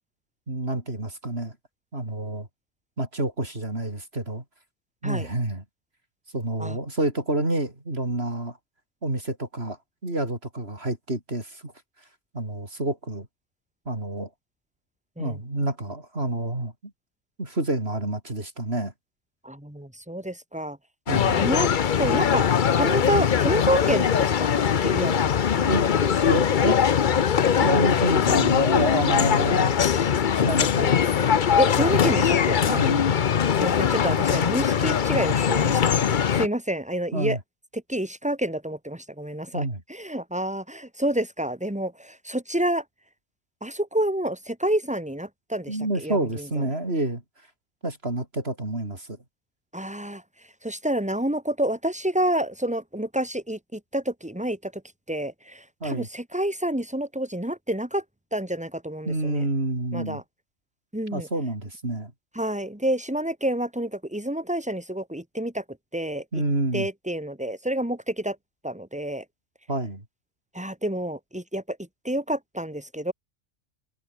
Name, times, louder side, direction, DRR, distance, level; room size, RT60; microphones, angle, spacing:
voice 1, 0.5-1.5 1.9-2.5 3.0-4.4 5.0-5.6 6.3-8.6 9.0-9.8 10.0-11.7 12.3-13.3 13.9-14.3 15.2-16.7 17.4-18.9 21.1-21.4 25.7-25.9 26.3-26.8 27.6-29.8 30.3-31.3 32.8-33.0 37.1-37.4 39.5-39.8 45.7-47.2 47.8-49.2 55.8-56.1 59.1-60.2 61.1-62.1 66.3-66.9 69.7-70.0, right 2 dB, 55° right, 5.5 m, -28 dB
voice 2, 19.4-20.8 21.3-21.7 22.0-24.5 24.8-26.1 31.6-32.8 33.6-37.4 37.7-42.8 43.6-46.7 49.7-50.2 50.6-54.8 55.1-58.0 58.3-59.5 59.9-60.2 60.9-61.3 62.3-65.6 65.9-66.4 66.7-68.4 68.6-69.2 70.5-71.8 72.0-73.1, right 1 dB, 5° right, 3.2 m, -28 dB
sound 1, 21.1-36.5, left 7 dB, 45° left, 0.8 m, -21 dB
omnidirectional pair, 1.3 m